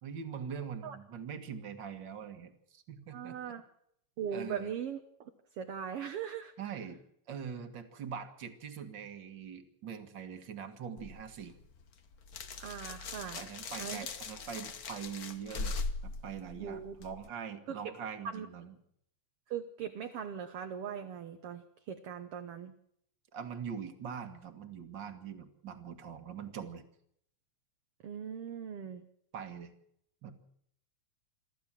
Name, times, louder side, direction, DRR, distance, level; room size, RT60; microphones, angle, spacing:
voice 1, 0.0-3.5 4.3-4.7 6.6-7.0 7.3-11.5 13.3-15.8 16.0-18.7 23.3-26.9 29.3-29.7 30.2-30.4, right 7 dB, 40° right, 9 dB, 2.2 m, -43 dB
voice 2, 3.1-3.6 4.2-6.5 12.6-13.4 13.8-14.0 16.6-16.9 17.7-17.9 18.2-18.5 19.5-22.7 28.0-29.0, right 8 dB, 60° right, 6 dB, 1.9 m, -40 dB
sound 1, 11.0-17.3, left 4 dB, 45° left, 1.2 m, -41 dB
24.5 x 14.0 x 7.5 m, 0.71 s
omnidirectional pair, 3.3 m